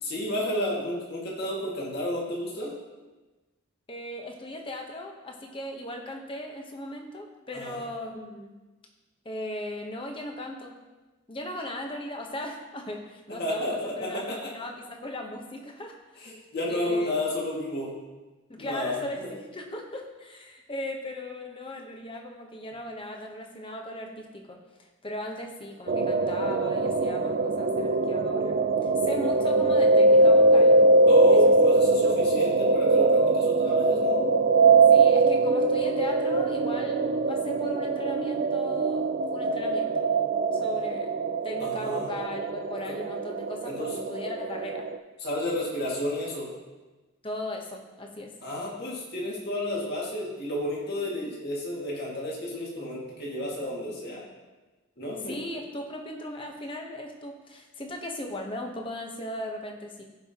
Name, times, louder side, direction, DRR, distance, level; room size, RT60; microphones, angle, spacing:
voice 1, 0.0-2.7 7.5-7.8 13.4-14.5 16.2-17.9 18.6-19.3 31.1-34.2 41.6-42.1 43.6-43.9 45.2-46.5 48.4-54.2 55.0-55.3, left 1 dB, 45° left, -4 dB, 2.1 m, -31 dB
voice 2, 3.9-8.6 9.2-10.8 11.3-16.3 16.7-17.2 18.5-30.8 31.3-31.5 32.0-32.2 33.7-33.8 34.9-40.1 40.5-41.1 41.4-44.9 47.2-48.3 55.3-60.0, left 1 dB, 25° left, 2 dB, 1.0 m, -38 dB
sound 1, 25.9-45.0, right 2 dB, 40° right, 0.4 m, -22 dB
16.0 x 5.5 x 2.9 m, 1.2 s
head